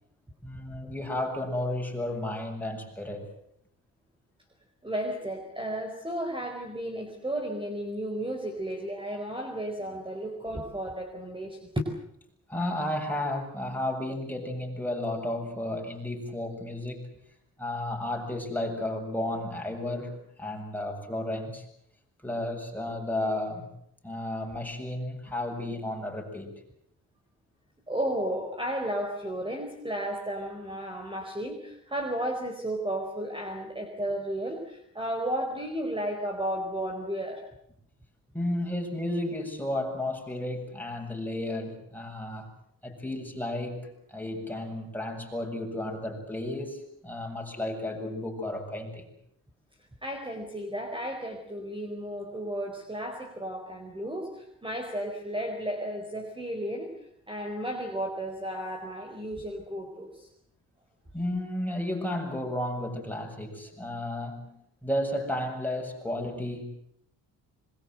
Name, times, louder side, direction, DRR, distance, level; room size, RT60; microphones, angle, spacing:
voice 1, 0.4-3.3 12.5-17.1 17.6-21.6 22.2-23.7 24.0-26.6 38.3-42.5 42.8-49.1 61.1-66.6, left 1 dB, 5° left, 2 dB, 7.8 m, -33 dB
voice 2, 4.8-11.7 27.9-37.4 50.0-60.3, right 1 dB, 15° right, 3 dB, 4.7 m, -33 dB
26.0 x 22.5 x 7.8 m, 0.71 s
cardioid pair, 80°, 34 cm